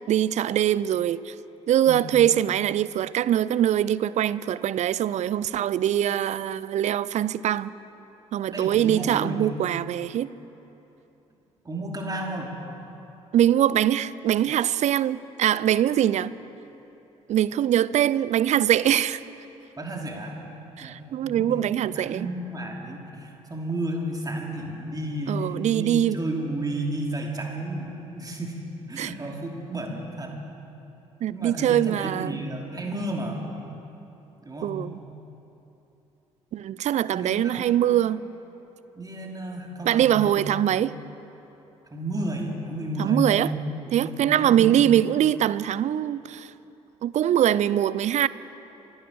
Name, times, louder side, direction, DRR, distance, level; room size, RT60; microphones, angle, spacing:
voice 1, 0.1-1.3 1.7-7.7 8.3-10.3 13.3-16.3 17.3-19.2 20.8-22.3 25.3-26.2 29.0-29.1 31.2-32.4 34.6-34.9 36.5-38.2 39.8-40.9 43.0-43.5 43.9-46.5 47.0-48.3, right 11 dB, 45° right, 0.5 m, -23 dB
voice 2, 8.5-9.4 11.6-12.5 19.8-20.4 20.8-28.6 28.9-30.3 31.3-33.4 34.4-34.7 37.1-37.7 39.0-40.4 41.9-43.6 44.0-44.8, right 1 dB, 25° right, 3.1 m, -32 dB
26.5 x 11.0 x 4.7 m
figure-of-eight pair, 45°, 16 cm